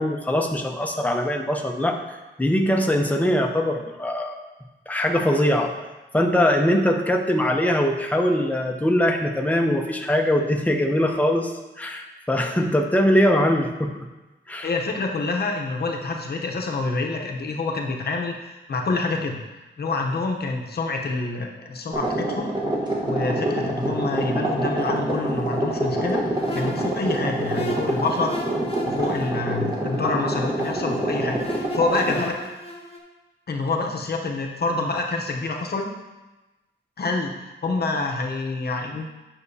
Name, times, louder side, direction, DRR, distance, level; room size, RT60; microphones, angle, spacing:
voice 1, 0.0-4.3 4.9-5.7 6.1-11.5 11.8-14.0 14.5-14.7, equal, 5° left, 3 dB, 0.7 m, -22 dB
voice 2, 14.6-19.4 19.8-22.5 23.0-26.2 26.5-28.4 28.8-32.4 33.5-35.9 37.0-39.1, left 3 dB, 50° left, 1 dB, 0.8 m, -27 dB
sound 1, 21.9-32.3, right 1 dB, 20° right, 1.2 m, -26 dB
sound 2, 26.3-33.0, left 1 dB, 30° left, 1.0 m, -37 dB
8.9 x 5.9 x 2.8 m, 1.1 s
wide cardioid pair, 130°, 21 cm